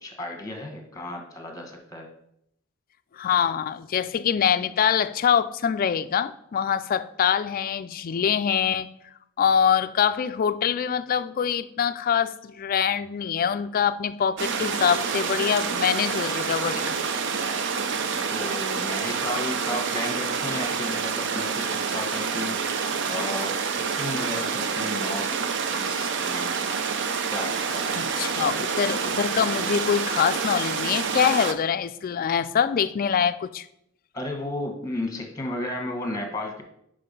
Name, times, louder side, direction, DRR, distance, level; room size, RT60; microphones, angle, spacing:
voice 1, 0.0-2.1 18.3-22.7 23.1-26.5 27.3-28.8 34.1-36.6, left 1 dB, 15° left, 1.2 m, -34 dB
voice 2, 3.1-8.9 9.4-16.9 28.0-33.7, left 7 dB, 45° left, 0.3 m, -24 dB
sound 1, 14.4-31.5, right 5 dB, 60° right, 0.6 m, -28 dB
5.8 x 5.2 x 5.2 m
head